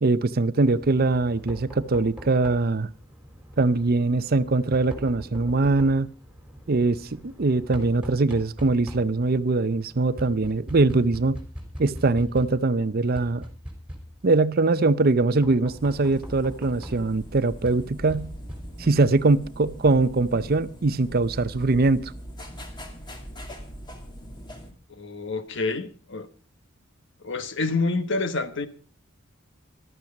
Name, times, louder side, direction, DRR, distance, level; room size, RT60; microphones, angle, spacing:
voice 1, 0.0-2.9 3.6-6.1 6.7-11.4 11.8-13.4 14.2-18.3 18.8-22.1, right 3 dB, 50° right, 0.6 m, -22 dB
Knock, 0.6-19.1, equal, 5° right, 3.4 m, -42 dB
sound 1, 15.7-24.7, equal, 20° left, 2.3 m, -41 dB
voice 2, 24.9-26.3 27.2-28.7, left 3 dB, 60° left, 1.3 m, -28 dB
14.5 x 12.5 x 5.2 m
head